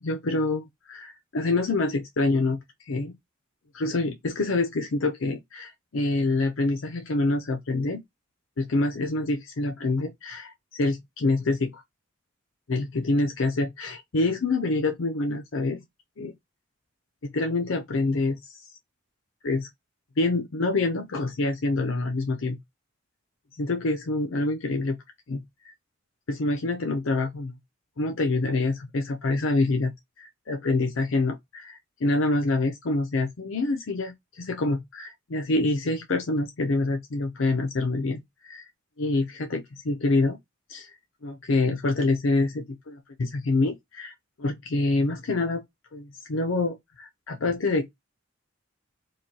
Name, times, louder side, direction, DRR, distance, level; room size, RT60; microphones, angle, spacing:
voice 1, 0.0-3.2 3.7-8.0 8.6-11.8 12.7-15.8 16.2-16.3 17.2-18.7 19.4-19.7 20.2-22.6 23.6-25.0 25.3-25.7 26.3-27.5 28.0-29.9 30.2-38.7 39.0-40.4 40.7-41.0 41.2-45.6 45.9-47.9, left 2 dB, 75° left, 0.6 m, -26 dB
4.8 x 2.2 x 2.8 m
head